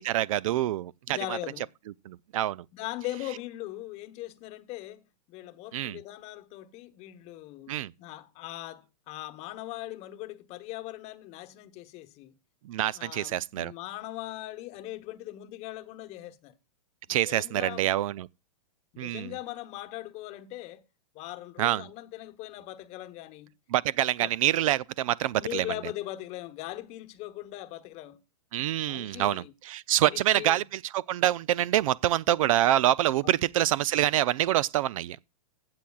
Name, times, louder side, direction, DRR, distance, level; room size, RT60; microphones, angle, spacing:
voice 1, 0.0-1.4 2.1-2.7 5.7-6.0 7.7-7.9 12.6-13.7 17.1-18.3 19.0-19.3 21.6-21.9 23.7-25.7 28.5-35.2, right 13 dB, 60° right, 0.4 m, -26 dB
voice 2, 1.1-1.7 2.7-12.3 12.9-16.5 17.1-17.9 18.9-20.8 21.1-23.5 24.2-24.3 25.4-28.2 28.9-29.5 30.0-30.6 33.2-33.3, left 16 dB, 35° left, 1.0 m, -40 dB
15.5 x 7.8 x 2.3 m
hypercardioid pair, 135°, 20 cm